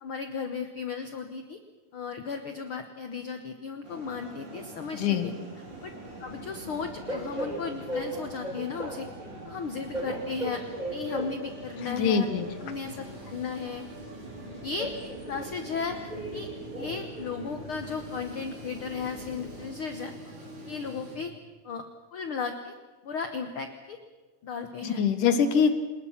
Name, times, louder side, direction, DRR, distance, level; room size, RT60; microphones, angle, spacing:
voice 1, 0.0-1.6 1.9-5.3 5.8-5.9 6.2-9.1 9.4-10.6 10.9-12.3 12.6-13.8 14.6-16.0 16.3-16.5 16.8-20.1 20.6-21.3 21.6-21.8 22.1-22.7 23.0-24.0 24.4-25.0, left 5 dB, 55° left, 6 dB, 1.6 m, -35 dB
sound 1, 3.8-21.2, right 1 dB, 55° right, 5.7 m, -45 dB
voice 2, 4.9-5.3 11.9-12.4 24.8-25.8, left 6 dB, 80° left, 9 dB, 3.1 m, -24 dB
Train, 5.7-19.6, right 1 dB, 15° right, 3.8 m, -39 dB
29.0 x 20.0 x 5.8 m, 1.3 s
omnidirectional pair, 3.6 m